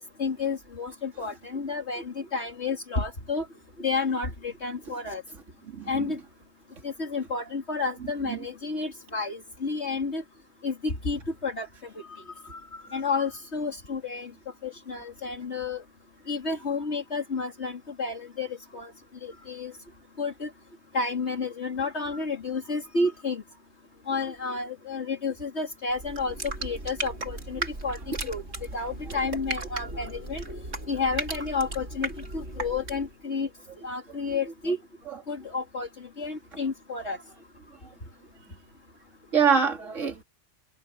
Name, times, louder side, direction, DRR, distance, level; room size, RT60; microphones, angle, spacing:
voice 1, 0.2-3.5 3.8-5.2 5.9-6.2 6.8-10.2 10.6-14.3 14.6-15.8 16.3-18.9 19.2-19.7 20.2-20.5 20.9-23.4 24.1-28.4 28.7-30.4 30.9-33.5 33.8-34.8 35.3-37.2, left 4 dB, 60° left, 3.1 m, -31 dB
voice 2, 5.7-6.1 8.3-8.4 30.5-30.6 35.1-35.2 39.3-40.2, right 6 dB, 75° right, 2.9 m, -25 dB
sound 1, 25.9-33.2, right 2 dB, 60° right, 3.5 m, -36 dB
omnidirectional pair, 1.3 m